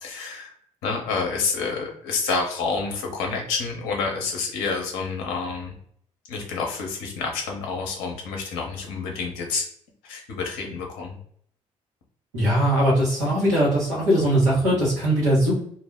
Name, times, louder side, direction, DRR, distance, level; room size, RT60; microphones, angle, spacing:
voice 1, 0.0-0.5 0.8-5.8 6.3-9.6 10.0-11.2, left 4 dB, 75° left, 1 dB, 0.6 m, -28 dB
voice 2, 12.3-15.6, equal, 85° right, -7 dB, 1.0 m, -20 dB
2.3 x 2.0 x 3.3 m, 0.63 s
hypercardioid pair, 45°, 16 cm